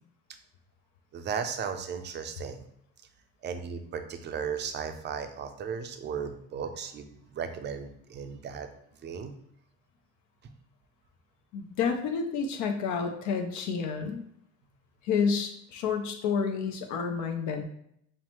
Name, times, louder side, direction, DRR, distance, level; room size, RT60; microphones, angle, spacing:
voice 1, 1.1-2.6 3.4-8.7 9.0-9.3, right 6 dB, 30° right, 7 dB, 0.5 m, -36 dB
voice 2, 11.5-14.2 15.0-17.6, left 6 dB, 60° left, 5 dB, 0.6 m, -29 dB
5.6 x 2.1 x 3.0 m, 0.72 s
supercardioid pair, 105°, 33 cm